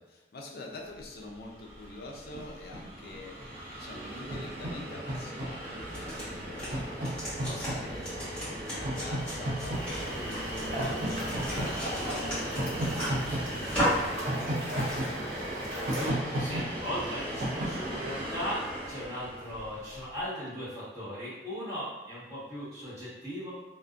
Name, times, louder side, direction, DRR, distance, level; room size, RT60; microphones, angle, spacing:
voice 1, 0.1-3.4 3.7-15.3, left 2 dB, 55° left, 0 dB, 0.4 m, -46 dB
Train, 1.3-1.4 1.6-20.0, right 1 dB, 55° right, 0.6 m, -35 dB
sound 1, 5.8-14.1, equal, 5° left, 1.0 m, -36 dB
sound 2, 9.7-16.1, right 1 dB, 90° right, 0.9 m, -38 dB
voice 2, 15.9-23.5, equal, 20° right, -12 dB, 1.2 m, -38 dB
2.5 x 2.1 x 2.4 m, 1.0 s
head